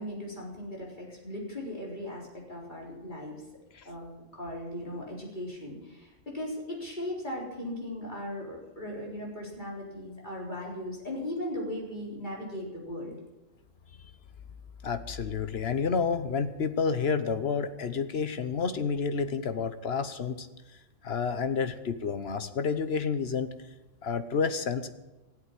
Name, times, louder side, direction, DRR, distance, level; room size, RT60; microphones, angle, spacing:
voice 1, 0.0-3.4 3.8-4.1 4.4-13.2, left 1 dB, 40° left, -3 dB, 4.3 m, -38 dB
voice 2, 14.8-20.5 21.0-23.5 24.0-24.9, left 5 dB, 60° left, 11 dB, 1.2 m, -29 dB
16.0 x 8.2 x 9.9 m, 1.0 s
omnidirectional pair, 1.2 m